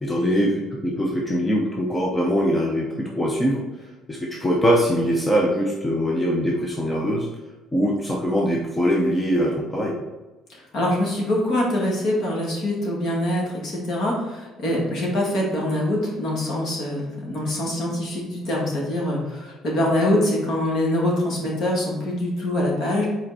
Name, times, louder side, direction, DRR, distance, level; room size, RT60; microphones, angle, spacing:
voice 1, 0.0-3.6 4.1-7.3 7.7-10.0, equal, 10° left, -1 dB, 0.7 m, -22 dB
voice 2, 10.7-23.1, left 1 dB, 50° left, -3 dB, 2.0 m, -24 dB
5.5 x 4.4 x 4.2 m, 1.2 s
cardioid pair, 155°, 0 cm